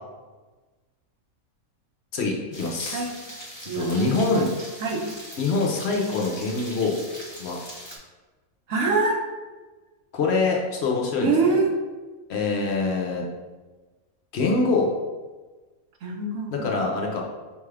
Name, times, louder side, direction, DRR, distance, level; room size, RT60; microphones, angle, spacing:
voice 1, 2.1-3.1 3.7-4.5 5.4-7.0 7.4-7.6 10.1-11.6 12.3-13.2 14.3-14.9 16.5-17.2, left 3 dB, 60° left, 0 dB, 0.8 m, -24 dB
sound 1, 2.5-8.0, equal, 25° left, 0.8 m, -41 dB
voice 2, 3.6-4.5 4.8-5.0 8.7-9.2 11.2-11.7 16.0-16.5, right 3 dB, 75° right, 1 dB, 1.1 m, -24 dB
5.3 x 2.3 x 3.2 m, 1.3 s
omnidirectional pair, 1.5 m